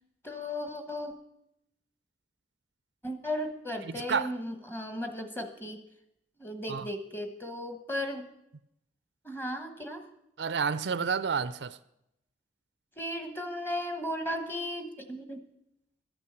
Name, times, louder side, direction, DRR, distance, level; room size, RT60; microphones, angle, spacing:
voice 1, 0.2-1.1 3.0-5.8 6.4-8.2 9.2-10.0 13.0-15.4, left 1 dB, 10° left, 1.1 m, -35 dB
voice 2, 3.8-4.3 6.7-6.9 10.4-11.8, right 6 dB, 75° right, 0.5 m, -30 dB
13.0 x 8.5 x 6.7 m
head